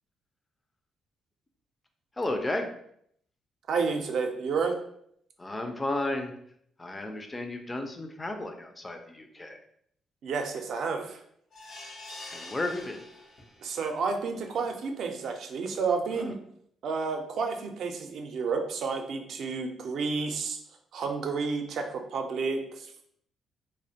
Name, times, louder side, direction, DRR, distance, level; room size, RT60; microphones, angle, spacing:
voice 1, 2.2-2.7 5.4-6.3 6.8-9.6 12.3-13.0 16.2-16.3, left 2 dB, 20° left, 5 dB, 0.3 m, -33 dB
voice 2, 3.7-4.8 10.2-11.2 13.6-16.4 16.8-20.6 20.9-23.0, right 4 dB, 65° right, 4 dB, 0.4 m, -30 dB
sound 1, 11.5-13.8 14.2-14.3 14.7-14.8, left 2 dB, 55° left, 0.7 m, -45 dB
2.4 x 2.1 x 2.7 m, 0.69 s
cardioid pair, 90°, 0 cm